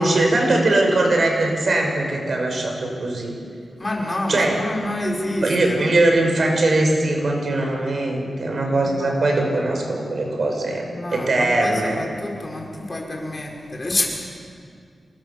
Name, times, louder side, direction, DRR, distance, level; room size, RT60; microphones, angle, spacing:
voice 1, 0.0-3.3 4.3-4.6 5.4-10.9 11.1-12.0, right 2 dB, 60° right, 2 dB, 6.2 m, -20 dB
voice 2, 3.8-5.9 8.8-9.1 10.9-14.1, left 1 dB, 30° left, 0 dB, 5.8 m, -28 dB
28.5 x 24.0 x 7.3 m, 2.2 s
wide cardioid pair, 90°, 0 cm